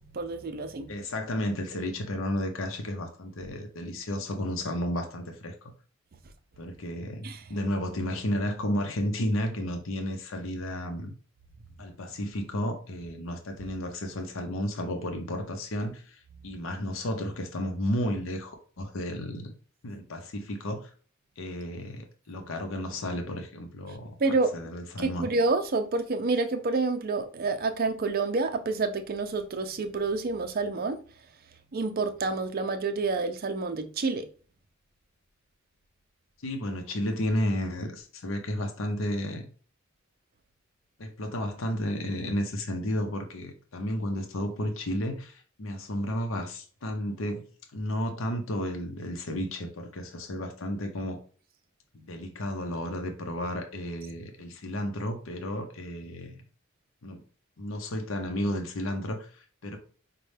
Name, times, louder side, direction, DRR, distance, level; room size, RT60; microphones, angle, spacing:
voice 1, 0.1-0.9 7.2-7.4 24.2-24.5 25.0-31.0 31.7-34.3, right 3 dB, 45° right, 0.5 m, -28 dB
voice 2, 0.9-5.7 6.6-11.1 11.8-19.5 19.8-20.9 21.4-24.1 24.5-25.3 36.4-39.4 41.0-47.4 47.7-51.2 51.9-56.4 57.0-57.2 57.6-59.8, left 1 dB, 70° left, 0.7 m, -32 dB
5.2 x 2.2 x 3.2 m
head